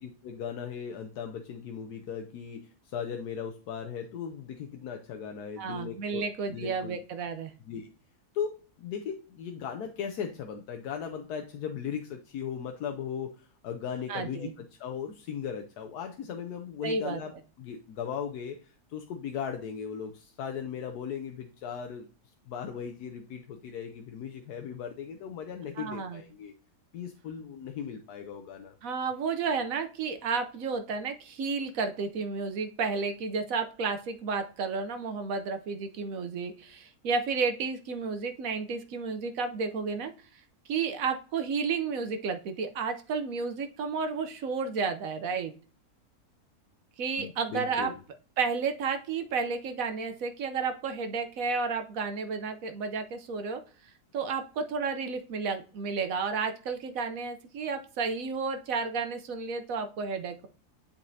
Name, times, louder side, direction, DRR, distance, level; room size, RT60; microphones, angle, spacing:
voice 1, 0.0-7.0 7.7-7.9 8.3-8.5 8.8-22.1 22.5-26.5 26.9-28.7 47.2-48.0, left 7 dB, 85° left, 4 dB, 1.2 m, -37 dB
voice 2, 5.6-7.5 14.1-14.5 16.8-17.2 25.8-26.2 28.8-40.1 40.7-45.5 47.0-47.9 48.4-53.6 54.1-60.5, right 5 dB, 65° right, 7 dB, 1.0 m, -32 dB
10.0 x 4.2 x 2.7 m, 0.39 s
omnidirectional pair, 1.6 m